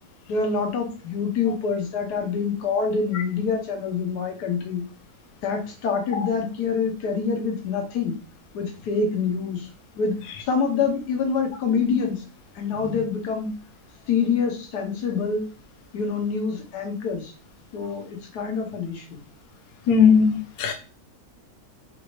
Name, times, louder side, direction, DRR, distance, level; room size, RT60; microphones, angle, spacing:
voice 1, 0.3-4.8 5.4-8.2 8.5-9.7 10.0-12.2 12.5-13.5 14.1-15.4 15.9-17.3 17.7-19.2, left 5 dB, 85° left, 3 dB, 1.4 m, -26 dB
voice 2, 19.9-20.7, left 6 dB, 70° left, 5 dB, 1.0 m, -18 dB
4.0 x 2.7 x 3.0 m, 0.36 s
omnidirectional pair, 1.7 m